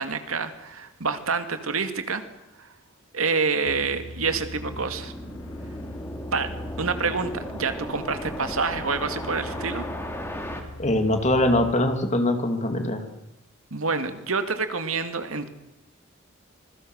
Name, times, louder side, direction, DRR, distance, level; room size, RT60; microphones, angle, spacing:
voice 1, 0.0-2.2 2.6-2.7 3.1-5.1 6.3-6.5 6.8-9.9 13.7-15.5, right 4 dB, 85° right, 8 dB, 2.4 m, -27 dB
sound 1, 3.7-11.7, left 2 dB, 90° left, 1.6 m, -41 dB
sound 2, 4.2-10.6, equal, 10° left, 2.9 m, -36 dB
voice 2, 10.8-13.0, left 1 dB, 35° left, 6 dB, 3.0 m, -22 dB
26.0 x 22.0 x 6.5 m, 0.93 s
head